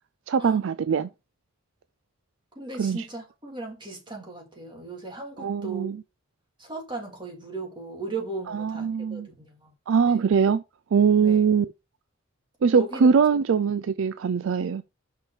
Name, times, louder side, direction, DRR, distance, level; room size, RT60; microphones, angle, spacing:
voice 1, 0.3-1.1 2.8-3.0 5.4-6.0 8.5-9.3 9.9-10.6 10.9-11.7 12.6-14.8, right 6 dB, 60° right, 0.3 m, -22 dB
voice 2, 2.6-5.9 6.6-9.7 10.1-10.2 11.2-11.4 12.7-13.1 13.3-13.4, right 3 dB, 20° right, 2.5 m, -37 dB
5.8 x 5.6 x 4.6 m
head